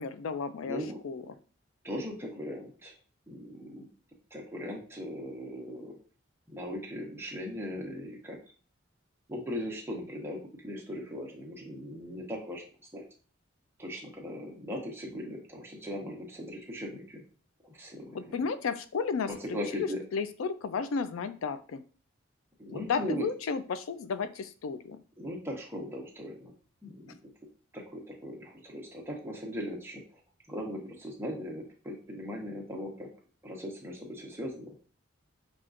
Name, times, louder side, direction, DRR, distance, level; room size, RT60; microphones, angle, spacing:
voice 1, 0.0-0.8 1.0-1.3 18.1-21.8 22.7-25.0, left 5 dB, 80° left, 12 dB, 0.4 m, -33 dB
voice 2, 0.6-1.0 1.8-2.9 3.3-3.9 4.3-6.0 6.5-8.4 9.3-12.6 12.9-13.0 13.8-17.2 17.6-18.4 19.2-20.0 22.6-23.3 25.2-26.5 26.8-27.3 27.7-30.0 30.5-33.1 33.4-34.7, equal, 10° right, -1 dB, 0.8 m, -39 dB
5.8 x 2.4 x 2.5 m, 0.39 s
head